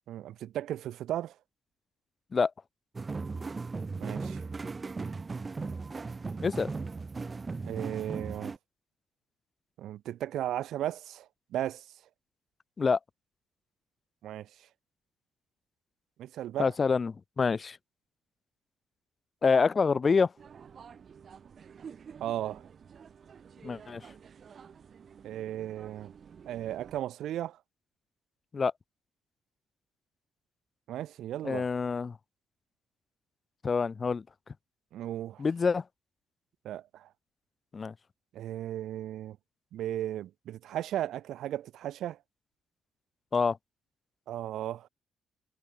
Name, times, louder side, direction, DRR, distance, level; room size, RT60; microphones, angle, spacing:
voice 1, 0.1-1.3 4.0-4.4 7.7-8.5 9.8-11.8 14.2-14.5 16.2-16.7 22.2-22.6 25.2-26.1 26.5-27.6 30.9-31.7 34.9-35.4 36.6-37.1 38.3-39.4 39.7-42.2 44.3-44.9, right 12 dB, 80° right, 1.0 m, -35 dB
sound 1, 2.9-8.6, right 4 dB, 30° right, 1.1 m, -37 dB
voice 2, 16.6-17.8 19.4-20.3 23.6-24.0 28.5-28.7 31.4-32.2 33.6-34.2 35.4-35.8 37.7-37.9 43.3-43.6, left 5 dB, 35° left, 0.5 m, -26 dB
sound 2, 20.4-27.0, right 7 dB, 50° right, 2.6 m, -51 dB
cardioid pair, 90°, 0 cm